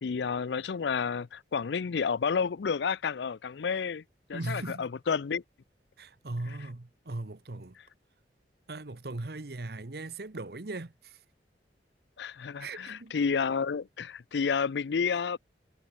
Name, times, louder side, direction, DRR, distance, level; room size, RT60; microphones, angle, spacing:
voice 1, 0.0-4.0 4.3-5.4 12.2-15.4, left 6 dB, 75° left, 0.5 m, -30 dB
voice 2, 4.3-4.9 6.0-7.8 8.7-11.2 12.6-13.1, right 2 dB, 60° right, 1.1 m, -39 dB
head